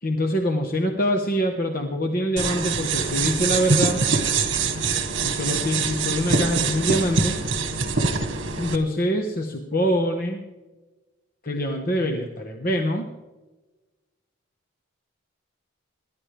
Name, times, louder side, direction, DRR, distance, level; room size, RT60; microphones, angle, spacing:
voice 1, 0.0-4.0 5.2-7.4 8.6-10.4 11.4-13.1, equal, 45° left, 3 dB, 1.3 m, -24 dB
sound 1, 2.4-8.8, right 4 dB, 65° right, 1.7 m, -24 dB
27.0 x 12.0 x 3.4 m, 1.2 s
head